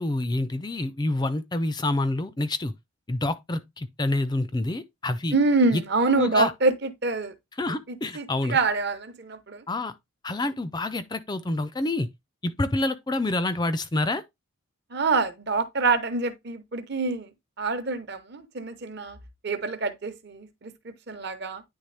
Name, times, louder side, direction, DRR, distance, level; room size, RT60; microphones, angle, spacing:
voice 1, 0.0-2.7 3.1-5.3 5.7-5.8 6.2-6.5 7.6-8.6 9.7-9.9 10.2-12.1 12.4-14.2, left 2 dB, 20° left, 0.4 m, -27 dB
voice 2, 5.3-7.3 7.9-9.6 14.9-19.2 19.4-21.6, right 3 dB, 50° right, 0.9 m, -26 dB
9.7 x 3.4 x 3.3 m
head